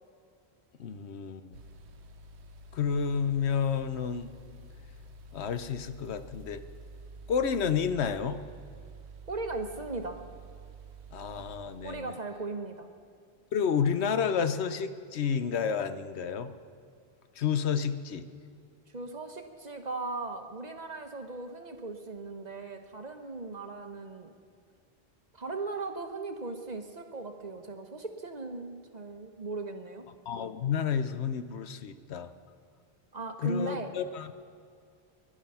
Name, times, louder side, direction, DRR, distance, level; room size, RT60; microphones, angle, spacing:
voice 1, 0.8-1.6 2.7-4.3 5.3-6.6 7.3-8.4 11.1-12.1 13.5-16.5 17.4-18.3 30.3-32.3 33.4-34.3, left 7 dB, 85° left, 10 dB, 1.1 m, -30 dB
sound 1, 1.5-12.0, right 3 dB, 90° right, 1.1 m, -49 dB
voice 2, 9.3-10.2 11.8-12.9 18.9-24.3 25.3-30.1 33.1-33.9, right 3 dB, 40° right, 5 dB, 1.2 m, -38 dB
22.5 x 11.0 x 5.6 m, 2.3 s
omnidirectional pair, 1.1 m